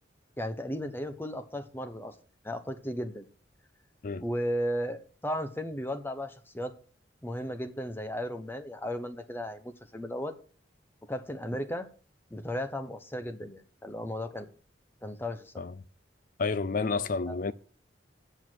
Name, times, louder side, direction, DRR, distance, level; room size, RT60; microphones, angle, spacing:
voice 1, 0.4-2.1 2.4-3.3 4.2-6.7 7.2-10.3 11.1-11.9 12.3-14.5 15.0-15.5 17.3-17.4, equal, 10° left, 0.9 m, -35 dB
voice 2, 16.4-17.5, left 4 dB, 45° left, 0.5 m, -30 dB
7.9 x 7.1 x 6.1 m
head